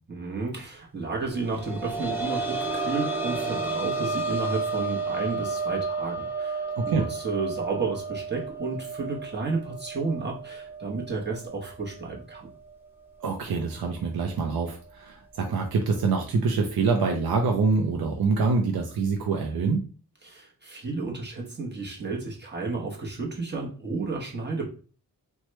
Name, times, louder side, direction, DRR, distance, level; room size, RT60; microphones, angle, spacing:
voice 1, 0.1-12.5 20.2-24.7, right 3 dB, 30° right, -2 dB, 1.1 m, -32 dB
sound 1, 1.4-12.8 13.2-13.3 14.8-14.9, right 3 dB, 5° right, 0.8 m, -32 dB
voice 2, 13.2-19.9, right 4 dB, 70° right, 2 dB, 0.6 m, -25 dB
3.0 x 2.2 x 3.0 m, 0.38 s
cardioid pair, 65°, 38 cm